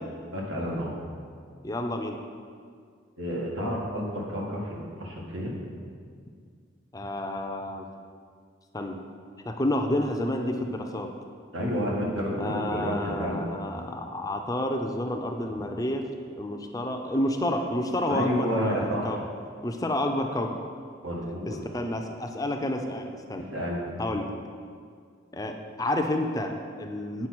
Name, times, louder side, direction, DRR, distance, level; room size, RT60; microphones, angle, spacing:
voice 1, 0.3-1.0 3.2-5.5 11.5-13.4 18.1-19.2 21.0-21.6 23.3-23.9, equal, 90° right, -3 dB, 1.9 m, -30 dB
voice 2, 1.6-2.2 6.9-7.9 8.7-9.0 9.5-11.1 12.4-16.1 16.4-19.2 19.6-20.5 21.4-23.5 24.0-24.3 25.3-27.3, left 1 dB, 20° left, 4 dB, 0.5 m, -29 dB
8.6 x 5.0 x 6.1 m, 2.1 s
head